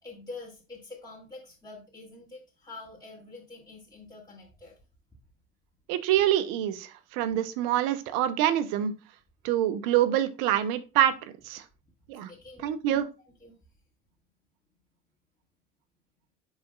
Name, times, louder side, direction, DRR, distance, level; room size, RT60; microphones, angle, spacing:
voice 1, 0.0-4.7 12.3-13.0 13.4-13.6, left 3 dB, 10° left, -5 dB, 2.5 m, -46 dB
voice 2, 5.9-8.9 9.4-11.1 11.4-11.6 12.1-12.3 12.6-13.1, right 11 dB, 75° right, 13 dB, 0.7 m, -26 dB
10.5 x 4.0 x 2.3 m, 0.30 s
hypercardioid pair, 55°, 32 cm